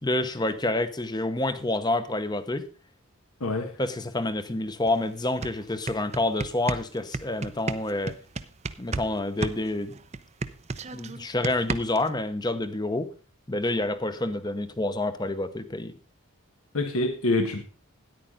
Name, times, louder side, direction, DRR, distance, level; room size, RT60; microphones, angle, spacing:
voice 1, 0.0-2.6 3.8-8.2 8.8-10.0 10.9-13.1 13.5-15.9, left 2 dB, 20° left, 0.8 m, -28 dB
voice 2, 3.4-3.7 16.7-17.6, left 2 dB, 75° left, 1.4 m, -26 dB
sound 1, 4.9-5.0 5.3-9.1 9.4-12.1, right 3 dB, 30° right, 0.6 m, -32 dB
13.5 x 10.0 x 3.7 m
head